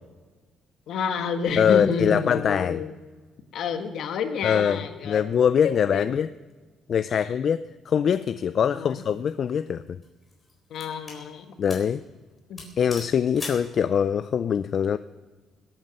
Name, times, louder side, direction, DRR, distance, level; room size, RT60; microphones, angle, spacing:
voice 1, 0.9-2.9 3.5-5.2 5.6-6.1 7.1-7.3 8.7-9.0 10.7-11.5 12.5-12.6, left 6 dB, 60° left, 6 dB, 1.5 m, -29 dB
voice 2, 1.6-2.8 4.4-6.3 6.9-10.0 11.6-12.0 12.8-15.0, left 8 dB, 45° left, 12 dB, 0.4 m, -23 dB
sound 1, 9.0-9.3 10.0-11.2 11.7-11.9 12.2-12.3 12.6-13.7, left 2 dB, 20° left, 4.0 m, -40 dB
21.0 x 8.9 x 6.5 m, 1.3 s
cardioid pair, 150°, 0 cm